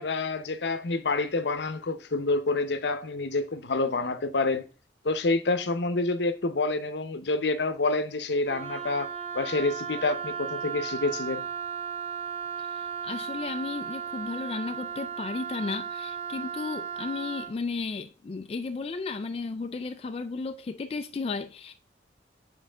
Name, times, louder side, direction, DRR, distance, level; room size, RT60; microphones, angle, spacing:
voice 1, 0.0-4.6 5.0-9.1 9.3-11.5, left 3 dB, 75° left, 0.7 m, -28 dB
Wind instrument woodwind instrument, 8.4-17.5, right 7 dB, 35° right, 0.5 m, -35 dB
voice 2, 12.7-21.7, left 4 dB, 35° left, 0.3 m, -34 dB
7.6 x 4.6 x 3.4 m
head